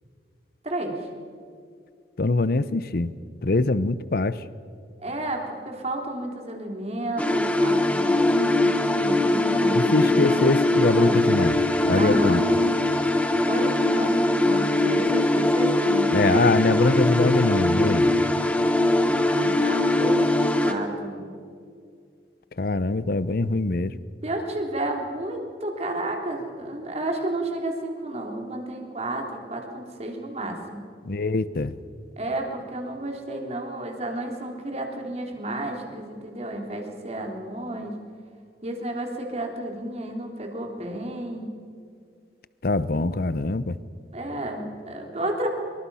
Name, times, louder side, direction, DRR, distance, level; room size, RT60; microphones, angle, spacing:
voice 1, 0.6-1.1 5.0-10.4 11.0-11.2 12.0-12.5 13.5-14.1 14.4-16.6 19.2-21.2 24.2-30.8 32.2-37.9 38.6-41.5 44.1-45.5, right 1 dB, 35° right, 2 dB, 3.6 m, -31 dB
voice 2, 2.2-3.1 3.4-4.4 9.7-11.6 11.9-12.4 16.1-18.1 22.6-23.9 31.0-31.7 42.6-43.8, left 2 dB, 55° left, 16 dB, 0.7 m, -23 dB
sound 1, 7.2-20.7, left 1 dB, 10° left, 1.5 m, -21 dB
25.5 x 24.0 x 5.7 m, 2.2 s
head